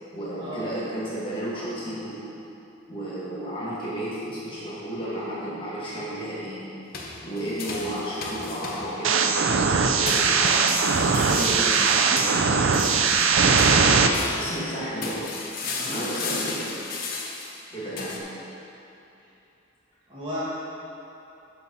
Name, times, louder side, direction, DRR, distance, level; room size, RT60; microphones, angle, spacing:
voice 1, 0.1-2.2 2.9-6.7 7.2-10.5 11.0-12.9 13.7-14.0 14.4-15.2 15.8-16.7 17.7-18.3, right 1 dB, 25° left, -8 dB, 2.2 m, -33 dB
sound 1, 6.9-9.2 10.1-14.7 15.0-18.2, left 4 dB, 45° left, 1.0 m, -35 dB
sound 2, 9.0-14.1, right 5 dB, 70° right, 0.5 m, -20 dB
voice 2, 15.6-16.1 20.1-20.4, equal, 25° right, -10 dB, 1.7 m, -35 dB
12.0 x 5.7 x 4.1 m, 2.8 s
head